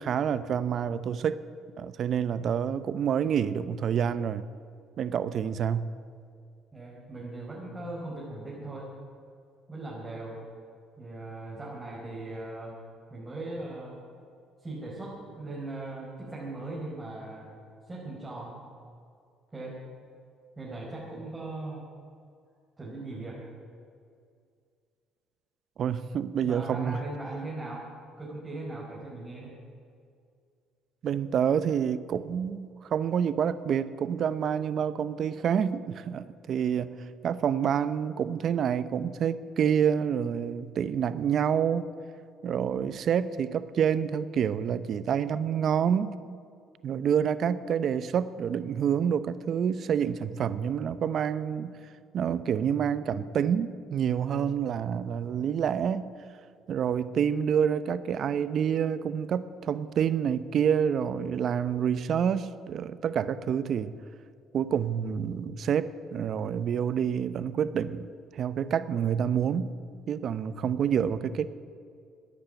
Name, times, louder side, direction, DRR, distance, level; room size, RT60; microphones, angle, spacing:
voice 1, 0.0-1.4 1.8-4.4 5.0-5.9 25.8-27.0 31.0-36.9 37.2-41.9 42.4-46.2 46.8-51.7 52.1-56.1 56.7-63.9 64.5-69.7 70.1-71.5, right 8 dB, 55° right, 14 dB, 0.8 m, -28 dB
voice 2, 6.7-8.9 9.7-10.4 11.0-12.8 13.1-14.0 14.6-17.6 17.8-18.6 19.5-19.8 20.6-21.9 22.8-23.4 26.4-27.8 28.2-29.5, right 2 dB, 20° right, -6 dB, 5.3 m, -39 dB
15.0 x 10.0 x 9.4 m, 2.3 s
supercardioid pair, 75°, 0 cm